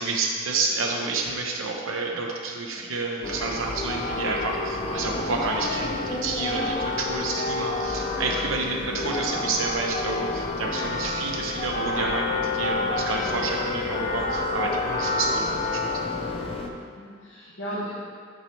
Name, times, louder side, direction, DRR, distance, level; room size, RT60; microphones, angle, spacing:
voice 1, 0.0-15.9, right 3 dB, 80° right, 0 dB, 0.7 m, -29 dB
voice 2, 2.6-2.9 16.8-17.9, right 1 dB, 65° left, -10 dB, 1.1 m, -38 dB
sound 1, 3.2-16.7, left 3 dB, 30° left, 0.4 m, -29 dB
8.7 x 4.3 x 3.2 m, 2.1 s
head